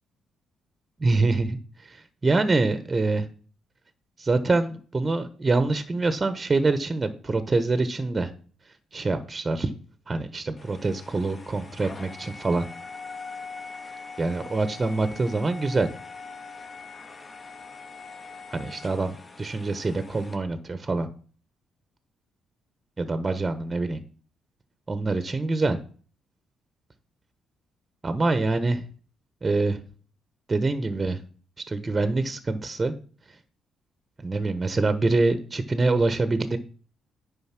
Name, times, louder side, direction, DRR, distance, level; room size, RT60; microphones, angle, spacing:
voice 1, 1.0-3.3 4.2-8.3 8.9-9.7 10.1-12.6 14.2-15.9 18.5-21.1 23.0-24.0 24.9-25.8 28.0-28.8 29.4-29.8 30.5-31.2 31.7-32.9 34.2-36.6, right 3 dB, 25° right, 11 dB, 1.2 m, -25 dB
sound 1, 10.6-20.4, left 4 dB, 30° left, 1.9 m, -42 dB
9.6 x 5.5 x 6.0 m, 0.40 s
cardioid pair, 90°, 0 cm